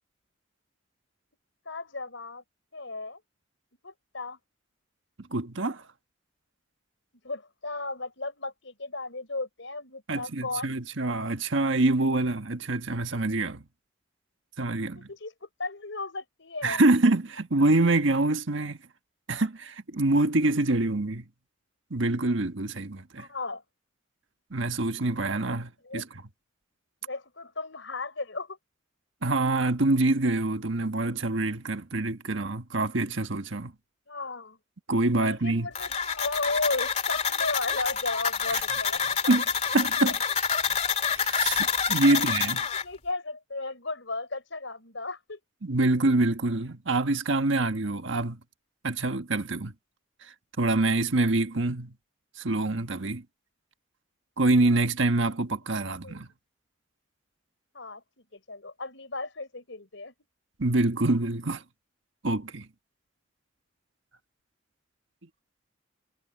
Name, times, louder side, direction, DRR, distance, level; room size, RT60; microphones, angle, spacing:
voice 1, 1.7-2.4 2.7-3.2 3.8-4.4 7.2-10.8 14.8-16.8 23.2-23.6 25.8-26.0 27.0-28.6 34.1-34.6 35.1-39.3 40.0-40.1 42.1-42.2 42.7-45.4 55.9-56.2 57.7-58.0 58.3-60.1, left 3 dB, 70° left, 4.3 m, -35 dB
voice 2, 5.2-5.9 10.1-13.6 14.6-15.1 16.6-18.8 19.3-21.2 21.9-23.3 24.5-26.2 29.2-33.7 34.9-35.7 38.5-38.6 39.3-39.4 39.7-40.2 41.1-42.6 45.6-48.4 48.8-49.7 50.2-51.9 52.4-53.2 54.4-56.3 60.6-61.6 62.2-62.7, right 2 dB, 75° right, 1.4 m, -26 dB
sound 1, 35.8-42.8, left 6 dB, 35° left, 2.9 m, -27 dB
head